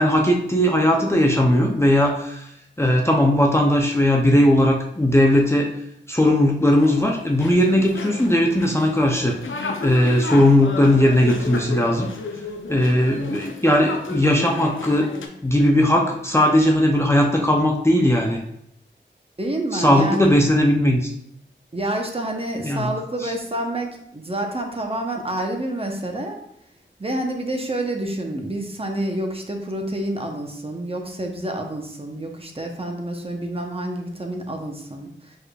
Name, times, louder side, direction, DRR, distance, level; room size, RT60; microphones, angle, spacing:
voice 1, 0.0-2.5 2.8-5.7 6.1-9.4 9.8-12.1 12.7-15.1 15.4-18.4 19.7-21.1 22.6-22.9 23.2-23.3, left 1 dB, 15° left, 0 dB, 0.5 m, -18 dB
sound 1, 6.7-15.3, left 3 dB, 85° left, 0.6 m, -33 dB
voice 2, 19.4-20.3 21.7-26.4 27.0-35.4, right 1 dB, 30° right, 3 dB, 0.8 m, -28 dB
5.0 x 4.4 x 2.3 m, 0.75 s
wide cardioid pair, 55°, 20 cm